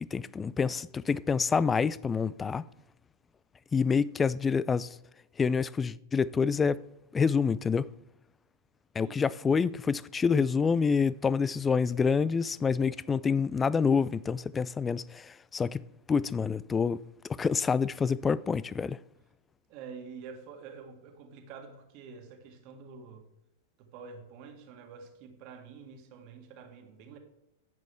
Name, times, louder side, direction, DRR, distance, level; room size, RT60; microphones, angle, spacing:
voice 1, 0.0-2.6 3.7-4.9 5.4-6.8 7.1-7.9 9.0-17.0 17.3-19.0, left 5 dB, 20° left, 0.3 m, -27 dB
voice 2, 9.0-9.4 19.7-23.3 23.8-27.2, right 5 dB, 50° right, 1.9 m, -47 dB
10.5 x 8.2 x 3.6 m
hypercardioid pair, 100°, 0 cm